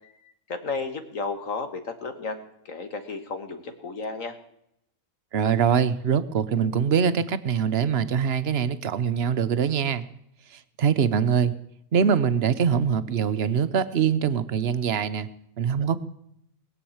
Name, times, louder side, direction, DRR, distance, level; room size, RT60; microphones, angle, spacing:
voice 1, 0.5-2.4 2.7-4.4, left 4 dB, 70° left, 7 dB, 1.9 m, -33 dB
voice 2, 5.3-10.0 10.5-11.5 11.9-15.3 15.6-16.0, right 7 dB, 55° right, 13 dB, 0.9 m, -23 dB
20.0 x 7.1 x 8.6 m, 0.76 s
omnidirectional pair, 1.4 m